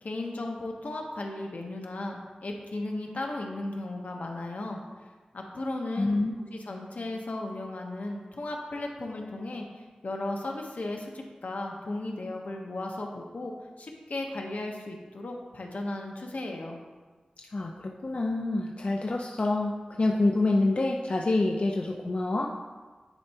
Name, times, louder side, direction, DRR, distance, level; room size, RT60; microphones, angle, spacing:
voice 1, 0.0-4.8 5.3-6.2 6.5-16.8, left 2 dB, 80° left, 1 dB, 0.9 m, -35 dB
voice 2, 6.0-6.3 17.4-22.5, left 2 dB, 55° left, 0 dB, 0.4 m, -27 dB
9.9 x 4.5 x 2.8 m, 1.4 s
wide cardioid pair, 85°, 3 cm